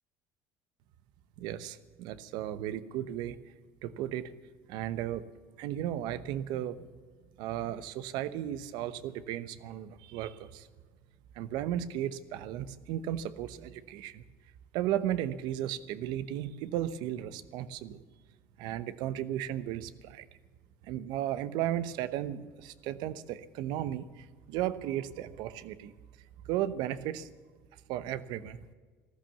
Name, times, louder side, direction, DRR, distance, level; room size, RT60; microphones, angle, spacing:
voice 1, 1.4-3.4 3.8-4.3 4.7-5.2 5.6-6.9 7.4-10.7 11.3-14.2 14.7-18.0 18.6-20.3 20.8-25.9 26.4-27.3 27.9-28.6, right 12 dB, 75° right, 14 dB, 0.9 m, -35 dB
14.5 x 13.0 x 7.1 m, 1.4 s
supercardioid pair, 90°, 7 cm